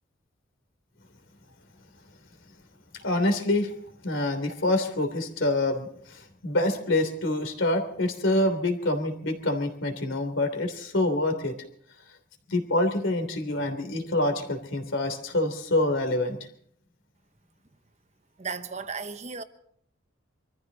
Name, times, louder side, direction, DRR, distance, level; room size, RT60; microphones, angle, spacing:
voice 1, 2.9-3.7 4.0-11.6 12.5-16.4, left 2 dB, 65° left, 3.1 m, -26 dB
voice 2, 18.4-19.4, right 5 dB, 35° right, 1.0 m, -35 dB
24.0 x 14.5 x 4.0 m
head